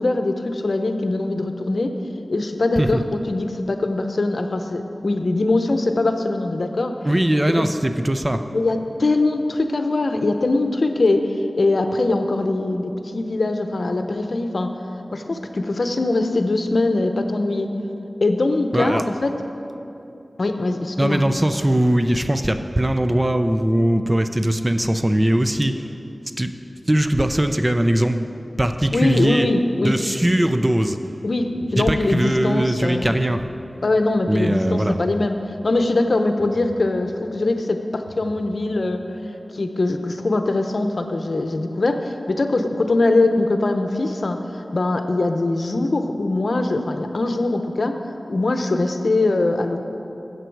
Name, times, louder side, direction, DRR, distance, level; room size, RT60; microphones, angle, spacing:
voice 1, 0.0-1.9 2.3-3.0 3.3-6.9 7.6-7.7 8.5-14.7 15.1-17.7 18.2-19.3 20.4-21.2 28.9-30.0 31.2-33.1 33.8-39.0 39.5-48.0 48.3-49.8, left 2 dB, 75° left, 6 dB, 0.7 m, -22 dB
voice 2, 7.0-8.4 18.7-19.0 21.0-25.7 26.4-26.5 26.9-28.3 28.6-29.5 29.8-31.0 31.8-33.4 34.3-35.0, right 1 dB, 25° right, 8 dB, 0.6 m, -20 dB
sound 1, 31.4-31.5 32.0-32.1 33.0-33.1 33.7-33.8 34.7-34.8 35.4-35.5 36.4-36.5 37.0-37.1 38.0-38.1 38.7-38.8, right 3 dB, 50° right, 2.6 m, -46 dB
13.0 x 8.1 x 4.7 m, 2.8 s
wide cardioid pair, 55°, 0 cm